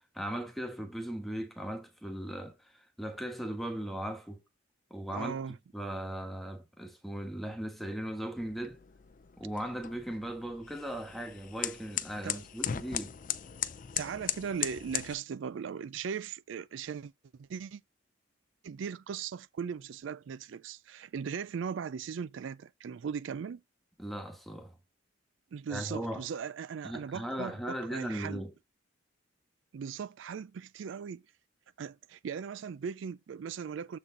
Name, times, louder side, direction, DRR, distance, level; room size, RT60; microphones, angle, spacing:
voice 1, 0.1-4.4 4.9-5.4 5.7-8.8 9.4-13.1 24.0-24.8 25.7-26.2 26.8-28.5, right 1 dB, ahead, 1.3 m, -38 dB
voice 2, 5.1-5.6 12.2-12.4 14.0-17.1 17.4-17.8 18.6-23.6 25.5-28.4 29.7-31.2 31.8-34.0, right 7 dB, 75° right, 0.4 m, -38 dB
sound 1, 8.4-15.1, left 10 dB, 45° left, 0.5 m, -38 dB
7.4 x 4.2 x 3.7 m
head